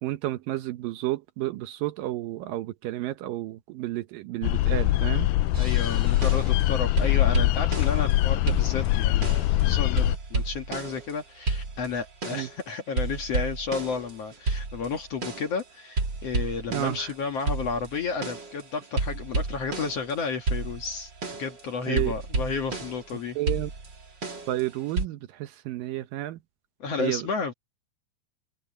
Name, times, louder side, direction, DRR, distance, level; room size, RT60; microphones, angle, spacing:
voice 1, 0.0-5.3 12.3-12.5 16.7-17.1 21.9-22.1 23.4-23.7 24.5-26.4 27.0-27.3, right 15 dB, 75° right, 2.3 m, -31 dB
sound 1, 4.4-10.2, left 15 dB, 85° left, 1.9 m, -23 dB
sound 2, 5.5-6.7 7.0-8.2 8.5-9.6 10.0-11.2 11.5-12.6 13.0-15.6 16.0-20.1 20.5-23.1 23.5-25.1, right 3 dB, 30° right, 3.3 m, -31 dB
voice 2, 5.6-21.1 21.4-23.4 26.8-27.5, left 5 dB, 50° left, 2.2 m, -32 dB
omnidirectional pair, 4.4 m